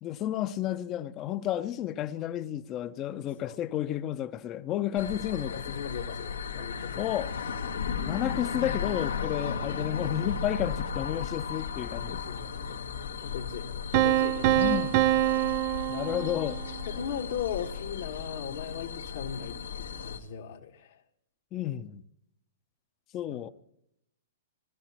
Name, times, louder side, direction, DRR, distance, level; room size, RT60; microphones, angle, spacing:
voice 1, 0.0-5.8 7.0-7.3 8.1-12.2 14.6-14.9 15.9-16.6 21.5-22.0 23.1-23.5, left 12 dB, 30° left, 0.8 m, -32 dB
sound 1, 5.0-20.2, left 6 dB, 85° left, 1.5 m, -35 dB
voice 2, 5.3-7.1 12.1-14.9 15.6-15.7 16.9-21.0 23.3-23.4, left 8 dB, 65° left, 1.5 m, -38 dB
Piano, 13.9-16.8, right 14 dB, 45° right, 0.4 m, -25 dB
20.5 x 13.0 x 2.9 m
hypercardioid pair, 115°, 0 cm